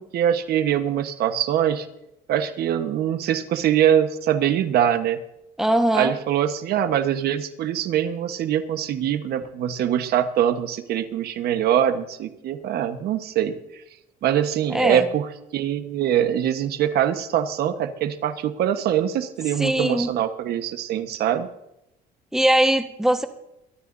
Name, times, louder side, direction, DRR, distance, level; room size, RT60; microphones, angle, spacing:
voice 1, 0.0-1.9 2.3-5.2 5.9-13.8 14.2-15.3 15.5-21.5, right 10 dB, 70° right, 9 dB, 1.3 m, -23 dB
voice 2, 5.6-6.1 14.7-15.0 19.6-20.1 22.3-23.3, right 1 dB, 5° right, 6 dB, 1.3 m, -20 dB
24.0 x 12.5 x 2.7 m, 0.84 s
cardioid pair, 110°, 17 cm